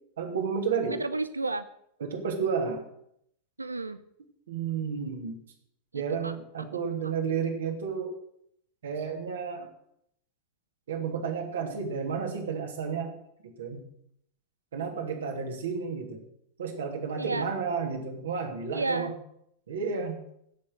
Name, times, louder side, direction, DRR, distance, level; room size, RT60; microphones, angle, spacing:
voice 1, 0.2-1.0 2.0-2.9 4.5-5.4 5.9-8.1 8.8-9.7 10.9-13.2 13.4-13.8 14.7-16.2 16.6-19.1 19.7-20.2, right 6 dB, 65° right, 2 dB, 2.9 m, -31 dB
voice 2, 0.9-1.7 3.6-4.0 5.9-6.4 7.0-7.1 17.2-17.5 18.7-19.1, right 3 dB, 80° right, 14 dB, 0.6 m, -32 dB
15.5 x 6.9 x 8.1 m, 0.74 s
figure-of-eight pair, 90°, 0 cm